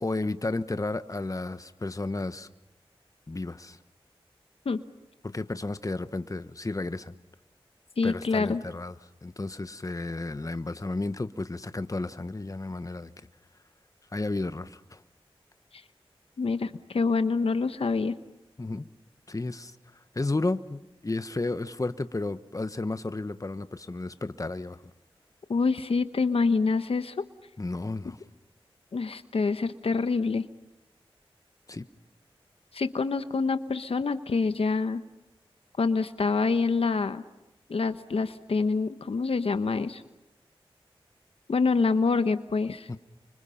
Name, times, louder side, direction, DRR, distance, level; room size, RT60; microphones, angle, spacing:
voice 1, 0.0-2.5 3.3-3.8 5.2-7.2 8.0-8.9 9.2-13.1 14.1-15.0 18.6-18.9 19.3-19.7 20.1-24.8 27.6-28.2 31.7-31.8 42.9-43.0, left 2 dB, 35° left, 1.2 m, -32 dB
voice 2, 8.0-8.6 16.4-18.2 25.5-27.2 28.9-30.5 32.7-35.0 35.8-37.2 37.7-40.0 41.5-42.9, left 4 dB, 75° left, 1.1 m, -26 dB
29.5 x 25.0 x 5.8 m
cardioid pair, 45°, 10 cm